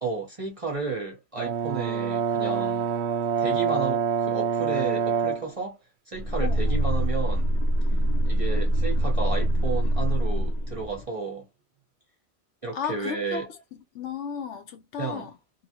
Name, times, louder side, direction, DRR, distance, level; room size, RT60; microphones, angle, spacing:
voice 1, 0.0-2.9 3.4-5.8 6.1-7.6 8.2-11.5 12.6-13.5 15.0-15.3, right 4 dB, 35° right, 0.7 m, -32 dB
Brass instrument, 1.4-5.5, right 7 dB, 70° right, 0.8 m, -26 dB
sound 1, 6.1-11.0, equal, 45° left, 0.9 m, -24 dB
voice 2, 12.7-15.3, left 7 dB, 70° left, 1.0 m, -34 dB
2.8 x 2.2 x 2.8 m
omnidirectional pair, 1.3 m